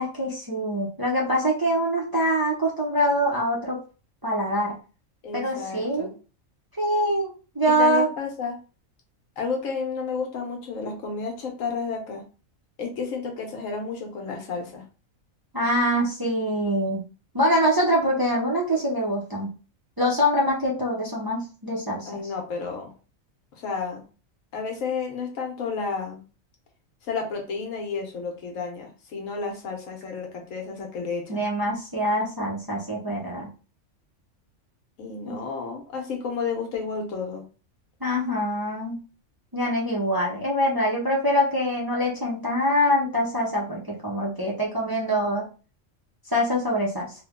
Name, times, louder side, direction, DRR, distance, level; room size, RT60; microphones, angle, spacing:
voice 1, 0.0-3.8 4.2-4.7 5.3-6.1 6.8-8.1 15.5-17.0 17.3-19.5 20.0-22.2 31.3-33.5 35.3-35.4 38.0-39.0 39.5-45.4 46.3-47.1, equal, 20° right, -3 dB, 0.6 m, -24 dB
voice 2, 5.2-6.1 7.6-8.6 9.4-12.2 12.8-14.8 22.1-22.9 23.5-24.0 24.5-26.2 27.0-31.4 35.0-37.4, left 5 dB, 80° left, 2 dB, 1.3 m, -31 dB
3.3 x 2.2 x 3.6 m, 0.35 s
omnidirectional pair, 1.4 m